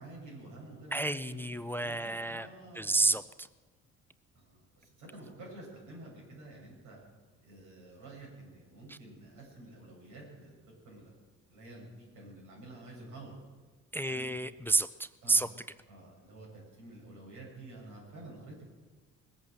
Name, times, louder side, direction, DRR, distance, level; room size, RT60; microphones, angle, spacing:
voice 1, 0.0-3.0 4.3-7.0 7.4-11.2 11.5-13.4 14.0-14.3 15.2-15.4 15.9-18.6, right 2 dB, 85° right, -2 dB, 7.2 m, -50 dB
voice 2, 0.9-2.5 2.7-3.5 8.9-9.0 13.9-15.5, right 2 dB, 5° left, 14 dB, 0.4 m, -30 dB
20.5 x 8.6 x 7.8 m, 1.3 s
cardioid pair, 95°, 30 cm